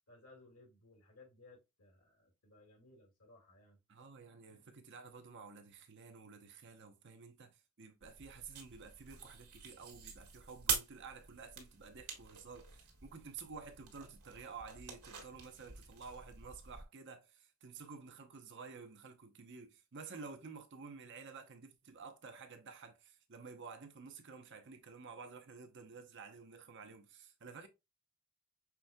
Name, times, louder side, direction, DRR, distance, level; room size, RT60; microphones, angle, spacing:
voice 1, 0.1-3.8 4.4-4.6, left 2 dB, 80° left, 2.3 m, -61 dB
voice 2, 3.9-27.7, right 5 dB, 55° right, 0.8 m, -52 dB
sound 1, 8.0-16.8, right 6 dB, 85° right, 1.4 m, -45 dB
6.0 x 3.7 x 2.3 m
head